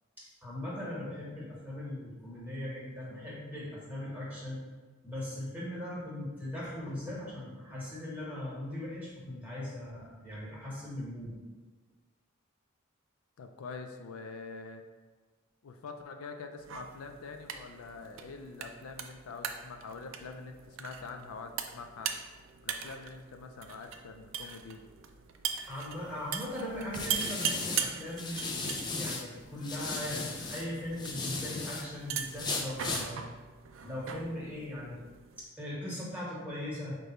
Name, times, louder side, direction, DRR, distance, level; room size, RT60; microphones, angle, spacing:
voice 1, 0.2-4.6 5.0-11.3 25.7-33.2 33.8-35.0 35.4-37.0, left 1 dB, 10° right, -7 dB, 1.3 m, -39 dB
voice 2, 13.4-14.8 15.6-22.1 22.6-24.8, left 4 dB, 90° left, 6 dB, 0.4 m, -45 dB
sound 1, 16.6-35.4, right 8 dB, 65° right, 0.3 m, -41 dB
sound 2, 26.0-29.2 29.6-31.8 32.3-33.1, left 3 dB, 20° left, 0.4 m, -36 dB
5.0 x 2.2 x 4.1 m, 1.3 s
head